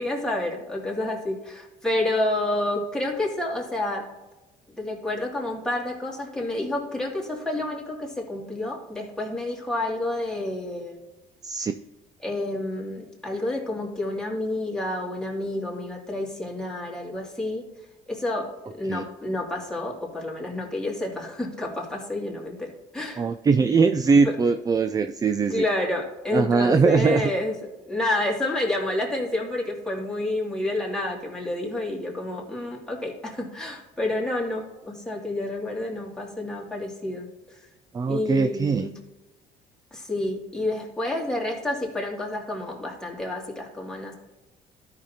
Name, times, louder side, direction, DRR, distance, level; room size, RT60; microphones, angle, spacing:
voice 1, 0.0-4.1 4.8-11.0 12.2-17.7 18.1-23.3 23.6-23.7 24.2-24.3 25.5-27.5 27.9-37.6 38.1-39.0 39.9-44.1, left 1 dB, 5° left, -2 dB, 2.4 m, -29 dB
voice 2, 23.2-25.6 26.3-27.3 37.9-38.9, right 4 dB, 20° right, 10 dB, 0.3 m, -21 dB
13.5 x 5.9 x 2.8 m, 1.1 s
cardioid pair, 110°, 17 cm